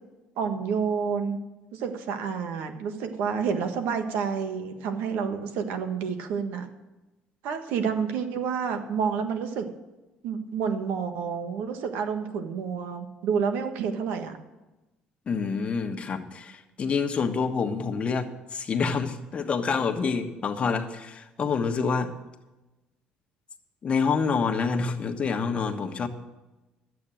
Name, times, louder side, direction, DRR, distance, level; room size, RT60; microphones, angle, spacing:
voice 1, 0.4-1.4 1.7-6.7 7.4-9.7 10.2-14.4, right 6 dB, 75° right, 7 dB, 1.5 m, -29 dB
voice 2, 15.3-22.1 23.8-26.1, left 5 dB, 40° left, 6 dB, 1.3 m, -27 dB
11.5 x 8.4 x 7.6 m, 1.0 s
supercardioid pair, 90°, 3 cm